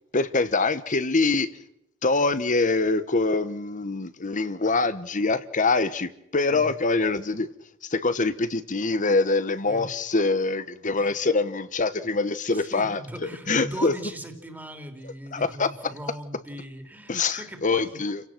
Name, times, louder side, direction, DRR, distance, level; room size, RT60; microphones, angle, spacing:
voice 1, 0.1-1.5 2.0-7.5 7.9-13.0 13.5-13.9 15.3-15.7 17.1-18.2, left 3 dB, 40° left, 1.2 m, -24 dB
voice 2, 12.5-18.0, right 1 dB, 10° right, 3.1 m, -39 dB
29.5 x 17.0 x 6.0 m
head